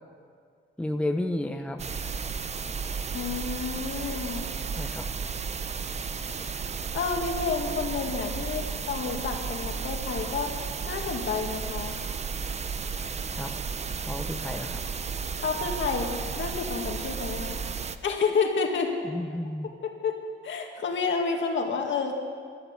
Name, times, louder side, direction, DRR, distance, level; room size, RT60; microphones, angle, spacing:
voice 1, 0.8-1.8 4.8-5.0 13.4-13.5 14.0-14.8 19.0-19.7, left 1 dB, 5° left, 5 dB, 0.7 m, -31 dB
sound 1, 1.8-18.0, right 5 dB, 35° right, 0.6 m, -33 dB
voice 2, 3.1-4.5 6.9-10.5 10.9-12.0 15.4-17.6 18.0-18.9 19.8-20.1 20.4-22.1, left 5 dB, 65° left, 2 dB, 2.0 m, -29 dB
13.0 x 12.0 x 8.0 m, 2.1 s
cardioid pair, 125°, 21 cm